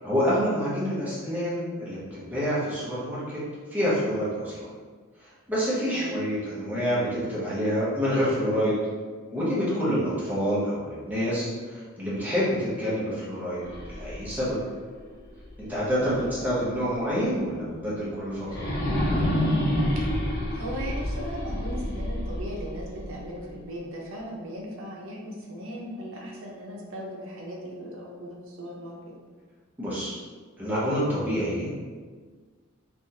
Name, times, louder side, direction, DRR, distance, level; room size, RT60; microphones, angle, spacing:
voice 1, 0.0-3.4 3.7-4.7 5.2-8.8 9.3-13.6 13.9-14.6 15.6-18.7 29.8-30.2 30.6-31.8, equal, 5° right, -9 dB, 0.8 m, -27 dB
sound 1, 13.5-16.5 16.9-17.0 18.4-23.5, left 1 dB, 50° left, 0.7 m, -29 dB
voice 2, 16.0-16.4 19.9-20.0 20.5-29.1, equal, 70° right, -2 dB, 0.7 m, -38 dB
3.4 x 2.4 x 2.7 m, 1.5 s
head